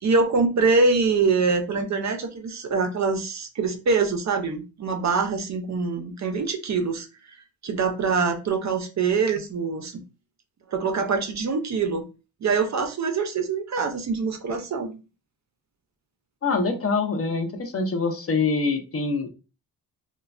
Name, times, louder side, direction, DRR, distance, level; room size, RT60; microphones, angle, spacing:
voice 1, 0.0-7.1 7.6-10.0 10.7-12.0 12.4-15.0, right 4 dB, 45° right, 5 dB, 0.4 m, -24 dB
voice 2, 16.4-19.3, left 4 dB, 40° left, 6 dB, 0.4 m, -25 dB
3.1 x 2.1 x 2.3 m, 0.31 s
wide cardioid pair, 165°, 38 cm